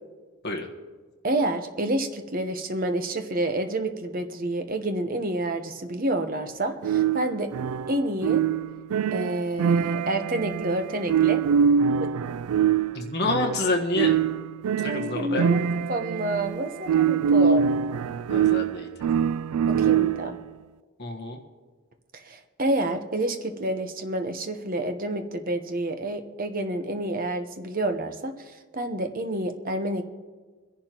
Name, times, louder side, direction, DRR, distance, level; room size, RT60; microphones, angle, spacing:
voice 1, 1.2-7.5 7.9-8.4 9.1-11.4 12.0-12.1 14.8-15.6 15.9-17.7 19.7-20.4 22.1-30.0, right 1 dB, 40° right, 6 dB, 1.0 m, -29 dB
sound 1, 6.8-20.4, right 7 dB, 80° right, 0.3 m, -24 dB
voice 2, 12.9-14.2 14.8-15.5 18.3-18.9 21.0-21.4, left 2 dB, 50° left, 1 dB, 1.4 m, -28 dB
24.0 x 11.0 x 3.0 m, 1.5 s
head